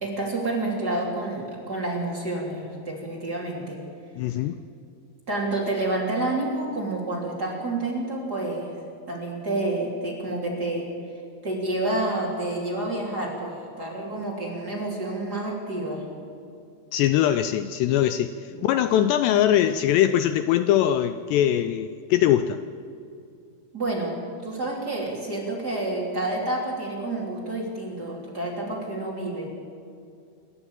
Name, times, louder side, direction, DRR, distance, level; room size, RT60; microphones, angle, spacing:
voice 1, 0.0-3.8 5.3-8.8 9.1-10.9 11.4-16.0 18.5-18.6 23.7-24.2 24.4-29.5, right 2 dB, 25° right, -3 dB, 3.2 m, -29 dB
voice 2, 4.2-4.6 16.9-22.6, left 11 dB, 80° left, 11 dB, 2.6 m, -22 dB
27.0 x 13.0 x 8.9 m, 2.5 s
omnidirectional pair, 5.3 m